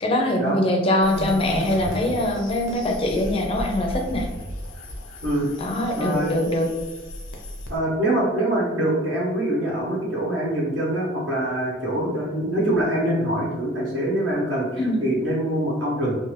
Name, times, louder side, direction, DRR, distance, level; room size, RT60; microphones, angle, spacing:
voice 1, 0.0-4.3 5.6-6.7 14.8-15.0, left 1 dB, 30° left, 2 dB, 0.4 m, -23 dB
sound 1, 1.0-7.8, left 1 dB, 85° left, 0.6 m, -34 dB
voice 2, 6.0-6.3 7.7-16.2, right 1 dB, 75° right, -5 dB, 0.9 m, -24 dB
2.5 x 2.3 x 3.1 m, 1.2 s
head